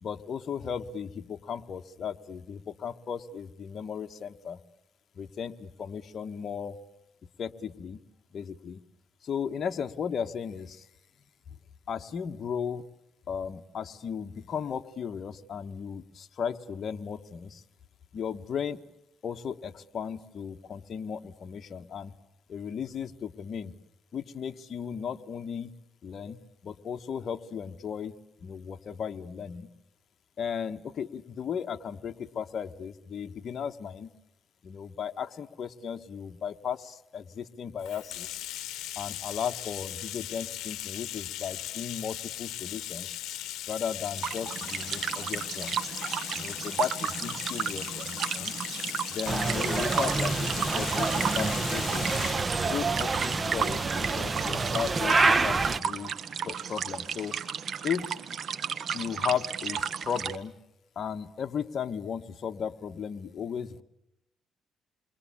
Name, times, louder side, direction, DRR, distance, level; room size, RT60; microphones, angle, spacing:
voice 1, 0.0-4.6 5.2-6.8 7.4-8.0 8.3-8.8 9.2-10.9 11.9-12.8 13.3-17.6 18.1-18.8 19.2-22.1 22.5-23.7 24.1-25.7 26.0-28.1 28.4-29.7 30.4-34.1 34.6-38.4 39.0-43.1 43.7-45.8 46.3-48.5 49.1-52.1 52.6-56.1 56.4-57.4 57.8-58.1 58.9-60.5 61.0-63.8, left 7 dB, 55° left, 6 dB, 1.3 m, -35 dB
Bathtub (filling or washing), 37.8-52.5, left 13 dB, 90° left, 0.9 m, -38 dB
sound 1, 44.1-60.4, right 7 dB, 55° right, 1.3 m, -34 dB
sound 2, 49.3-55.8, right 3 dB, 30° right, 1.1 m, -27 dB
28.5 x 22.5 x 8.6 m, 0.87 s
cardioid pair, 90°, 0 cm